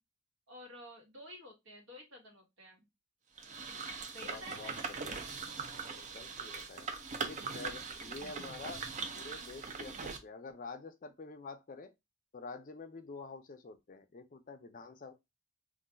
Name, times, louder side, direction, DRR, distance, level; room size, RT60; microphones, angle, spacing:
voice 1, 0.5-2.9 4.1-5.0, equal, 75° right, 1.3 m, -50 dB
sound 1, 3.4-10.2, right 5 dB, 35° right, 0.4 m, -41 dB
voice 2, 4.2-5.2 5.9-6.9 7.2-8.8 9.1-11.9 12.3-15.1, left 4 dB, 40° left, 0.5 m, -48 dB
2.5 x 2.3 x 3.8 m
head